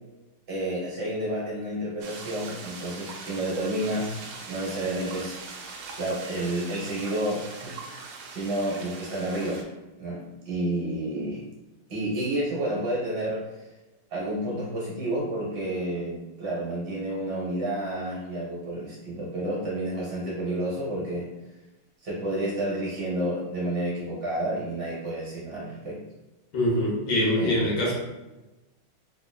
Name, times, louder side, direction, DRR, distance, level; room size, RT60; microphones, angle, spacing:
voice 1, 0.5-4.2 4.5-5.6 6.0-8.0 8.3-9.7 10.0-11.4 11.9-13.6 14.1-21.3 22.0-26.0 27.4-27.9, right 1 dB, 55° right, -5 dB, 1.5 m, -30 dB
sound 1, 2.0-9.6, right 4 dB, 85° right, 1.5 m, -41 dB
voice 2, 26.5-27.9, left 1 dB, 65° left, -4 dB, 1.4 m, -24 dB
3.9 x 3.0 x 2.2 m, 1.1 s
omnidirectional pair, 2.3 m